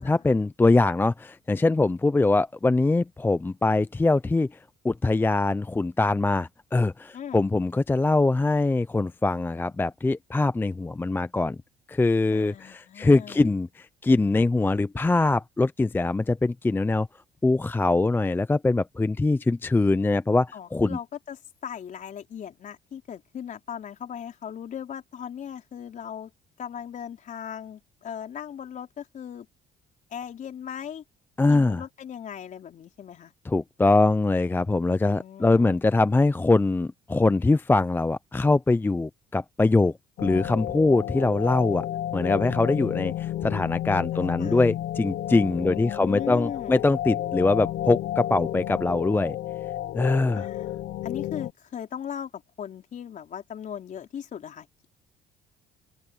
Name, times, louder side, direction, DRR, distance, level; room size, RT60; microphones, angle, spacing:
voice 1, 0.0-4.6 4.8-11.6 11.9-17.1 17.4-21.0 31.4-31.8 33.5-39.9 40.2-41.9 42.1-49.4 49.9-50.4, left 3 dB, 10° left, 0.5 m, -23 dB
voice 2, 12.3-13.4 20.5-21.4 21.6-26.3 26.6-29.5 30.1-31.0 31.5-33.3 35.1-35.8 44.1-44.8 45.6-46.8 50.4-50.7 51.0-54.9, left 8 dB, 50° left, 4.5 m, -38 dB
sound 1, 40.2-51.5, left 13 dB, 65° left, 0.8 m, -31 dB
open air
cardioid pair, 110°, 17 cm